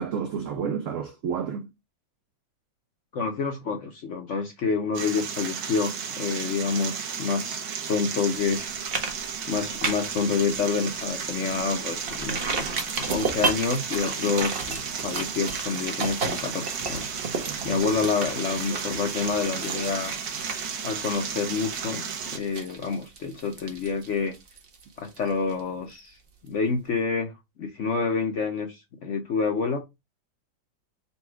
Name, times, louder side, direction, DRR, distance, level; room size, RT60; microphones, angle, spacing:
voice 1, 0.0-1.7 17.4-17.8, right 7 dB, 85° right, 0.6 m, -31 dB
voice 2, 3.1-8.7 9.5-12.6 13.0-17.0 17.6-20.1 20.8-22.0 22.3-24.3 25.0-26.1 26.4-27.3 27.6-29.8, left 5 dB, 60° left, 0.7 m, -28 dB
sound 1, 4.9-22.4, right 7 dB, 65° right, 1.2 m, -34 dB
sound 2, 8.4-8.6 8.9-9.1 9.4-10.2 10.6-10.7 11.1-11.2 12.0-25.6 25.9-26.0, right 4 dB, 45° right, 0.8 m, -33 dB
4.1 x 2.3 x 4.5 m
omnidirectional pair, 1.9 m